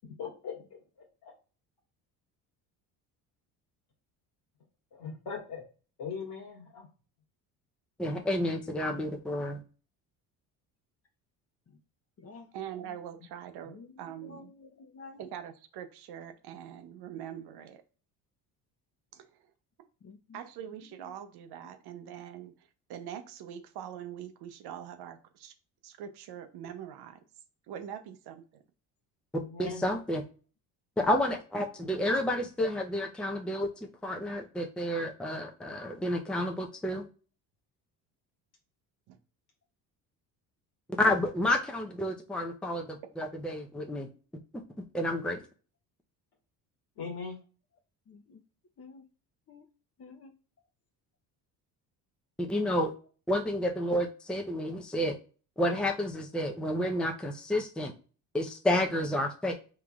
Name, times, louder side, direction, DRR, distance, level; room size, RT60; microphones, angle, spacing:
voice 1, 0.2-0.5 4.9-5.6 6.0-6.9 29.3-29.8 47.0-47.4, left 5 dB, 60° left, 1.7 m, -39 dB
voice 2, 8.0-9.6 29.6-30.2 31.0-37.0 41.0-44.1 44.5-44.6 44.9-45.4 52.4-52.9 53.3-55.2 55.6-57.9 58.3-59.5, left 1 dB, ahead, 0.6 m, -30 dB
voice 3, 12.5-14.5 15.2-17.8 19.1-19.5 20.3-25.5 25.8-27.2 27.7-28.6 39.1-39.2, right 9 dB, 65° right, 0.7 m, -43 dB
voice 4, 13.7-15.3 20.0-20.4 20.9-21.1 48.1-48.4 48.8-49.0 49.5-49.6 50.0-50.3, left 4 dB, 35° left, 0.8 m, -51 dB
3.7 x 3.1 x 2.3 m
supercardioid pair, 70°, 43 cm